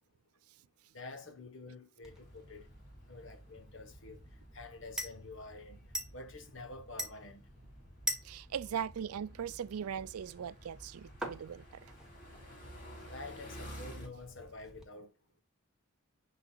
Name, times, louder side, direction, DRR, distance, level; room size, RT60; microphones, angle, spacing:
voice 1, 0.9-2.7 3.1-4.2 4.5-5.8 6.1-7.5 13.1-15.1, left 2 dB, 55° left, 1.4 m, -48 dB
sound 1, 2.0-14.8, right 1 dB, 5° right, 1.2 m, -46 dB
sound 2, 2.1-14.1, equal, 40° left, 2.9 m, -54 dB
voice 2, 8.2-11.9, right 8 dB, 85° right, 0.4 m, -39 dB
10.5 x 4.0 x 2.4 m
head